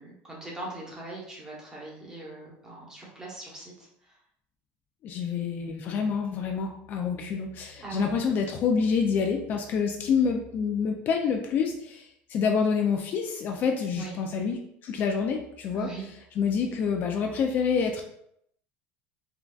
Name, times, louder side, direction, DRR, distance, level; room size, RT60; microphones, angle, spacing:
voice 1, 0.0-4.2 7.8-8.1 13.9-14.1 15.7-16.0, right 3 dB, 15° right, -3 dB, 1.0 m, -40 dB
voice 2, 5.0-15.9 16.4-18.0, left 6 dB, 45° left, 3 dB, 0.3 m, -27 dB
3.7 x 2.2 x 2.3 m, 0.73 s
supercardioid pair, 125°, 5 cm